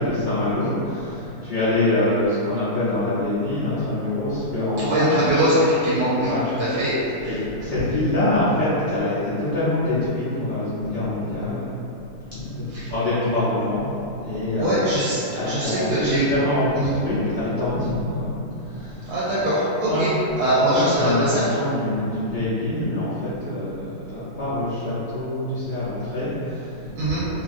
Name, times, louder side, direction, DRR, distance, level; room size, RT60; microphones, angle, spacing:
voice 1, 0.0-5.2 6.2-6.4 7.2-11.7 12.3-14.9 15.3-19.2 19.9-20.2 20.7-27.4, left 1 dB, 50° left, -14 dB, 0.6 m, -25 dB
voice 2, 4.8-6.3 6.6-6.9 7.2-7.4 12.7-12.9 14.6-16.2 16.7-16.9 19.1-20.1 20.4-21.4 27.0-27.2, right 1 dB, 80° right, -9 dB, 1.1 m, -22 dB
2.8 x 2.4 x 2.5 m, 2.8 s
omnidirectional pair, 1.6 m